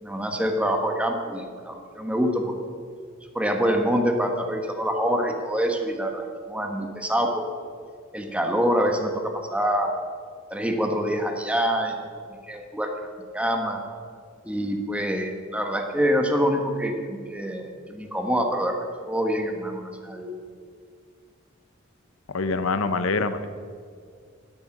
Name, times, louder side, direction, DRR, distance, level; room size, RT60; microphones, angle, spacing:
voice 1, 0.0-2.6 3.3-7.4 8.1-10.0 10.5-12.0 12.5-13.1 13.3-13.8 14.4-18.8 19.1-20.3, equal, 5° right, 3 dB, 1.3 m, -25 dB
voice 2, 22.3-23.5, left 3 dB, 75° left, 11 dB, 0.7 m, -25 dB
12.5 x 11.5 x 6.0 m, 2.1 s
head